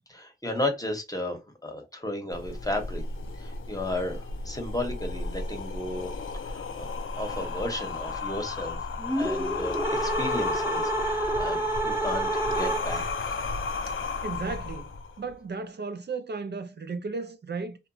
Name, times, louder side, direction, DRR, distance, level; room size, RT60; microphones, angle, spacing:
voice 1, 0.1-3.0 3.4-6.1 6.4-6.9 7.2-8.8 9.2-13.1, left 1 dB, 20° left, 0.8 m, -34 dB
sound 1, 2.3-15.3, left 4 dB, 80° left, 0.4 m, -34 dB
sound 2, 9.0-13.2, right 2 dB, 10° right, 0.7 m, -29 dB
voice 2, 14.2-17.8, right 4 dB, 55° right, 0.4 m, -35 dB
2.8 x 2.2 x 2.6 m
wide cardioid pair, 55°, 20 cm